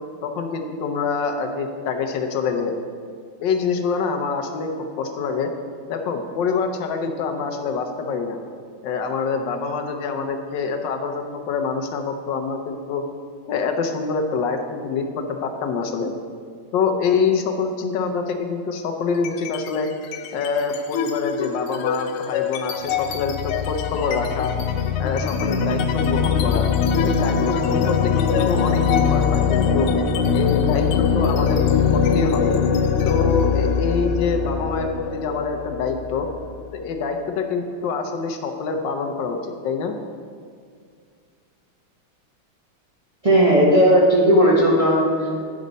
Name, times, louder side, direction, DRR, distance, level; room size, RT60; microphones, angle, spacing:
voice 1, 0.2-2.7 3.4-4.7 5.0-5.5 5.9-8.4 8.8-13.0 13.5-16.1 16.7-19.9 20.3-24.5 25.0-26.6 27.0-29.9 30.3-32.6 33.0-36.3 36.7-39.9, left 5 dB, 70° left, 4 dB, 1.3 m, -25 dB
sound 1, 19.1-19.7 20.0-36.6, left 6 dB, 90° left, 1.5 m, -22 dB
voice 2, 43.2-45.4, equal, 45° right, -6 dB, 0.4 m, -16 dB
9.5 x 6.3 x 4.0 m, 2.1 s
omnidirectional pair, 2.3 m